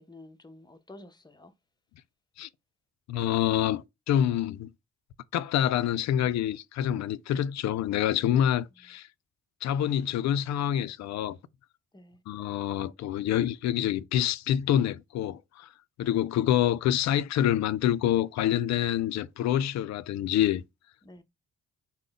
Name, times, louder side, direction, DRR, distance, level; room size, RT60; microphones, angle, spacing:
voice 1, 0.0-1.5 11.9-12.2 21.0-21.2, left 2 dB, 15° left, 0.6 m, -50 dB
voice 2, 3.1-4.7 5.3-9.1 9.6-11.4 12.3-15.7 16.0-20.6, left 11 dB, 65° left, 0.4 m, -27 dB
3.7 x 2.1 x 3.8 m
cardioid pair, 90°, 30 cm